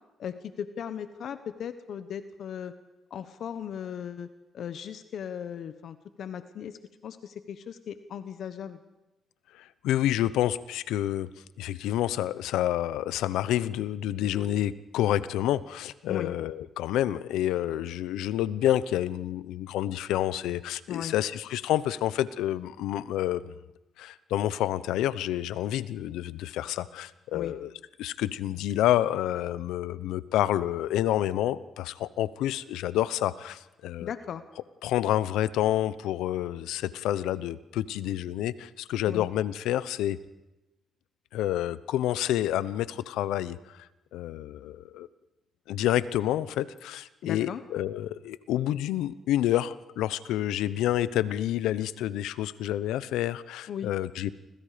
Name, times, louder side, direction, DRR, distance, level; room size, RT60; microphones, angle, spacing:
voice 1, 0.2-2.7 3.1-4.3 4.5-8.8 16.1-16.3 20.9-21.1 27.3-27.5 34.0-34.4 39.1-39.3 47.2-47.6 53.7-53.9, left 8 dB, 65° left, 11 dB, 1.1 m, -37 dB
voice 2, 9.5-11.3 11.6-23.5 24.0-27.7 28.0-34.1 34.8-40.2 41.3-43.9 44.1-45.1 45.7-54.3, left 12 dB, 90° left, 16 dB, 0.8 m, -28 dB
30.0 x 25.5 x 5.1 m, 1.0 s
cardioid pair, 90°, 0 cm